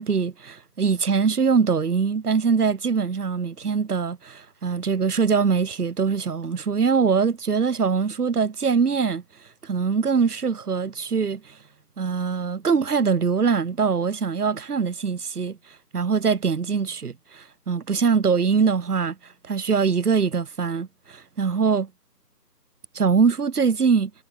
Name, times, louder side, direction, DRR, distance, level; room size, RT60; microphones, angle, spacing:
voice 1, 0.0-9.2 9.6-11.4 12.0-15.6 15.9-19.2 19.5-21.9 22.9-24.1, right 5 dB, 65° right, 1.0 m, -23 dB
figure-of-eight pair, 170°, 49 cm